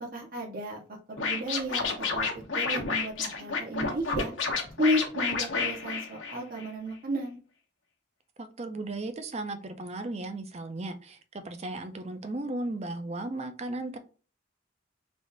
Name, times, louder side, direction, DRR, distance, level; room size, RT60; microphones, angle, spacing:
voice 1, 0.0-0.8 1.1-2.3 2.5-4.3 4.8-7.4, equal, 50° right, 0 dB, 0.9 m, -32 dB
Scratching (performance technique), 1.2-6.7, left 4 dB, 85° left, 1.0 m, -30 dB
voice 2, 8.4-14.0, right 2 dB, 35° right, 8 dB, 0.5 m, -36 dB
3.5 x 2.4 x 3.9 m, 0.36 s
head